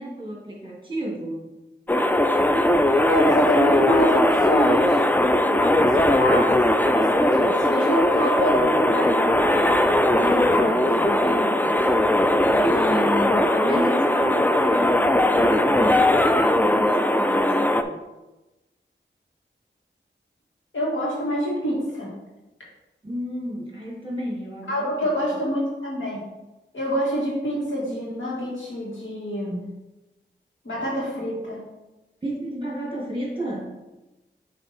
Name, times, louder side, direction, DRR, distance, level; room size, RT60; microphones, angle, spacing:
voice 1, 0.0-1.5 10.2-18.0 23.0-25.1 32.2-33.8, right 1 dB, 25° right, -3 dB, 2.0 m, -32 dB
sound 1, 1.9-17.8, left 1 dB, 10° left, 0.4 m, -19 dB
voice 2, 3.1-5.0 5.4-9.3 20.7-22.1 24.7-26.2 26.7-29.6 30.6-31.6, equal, 80° left, -5 dB, 2.2 m, -26 dB
7.2 x 3.4 x 4.4 m, 1.1 s
wide cardioid pair, 65°, 20 cm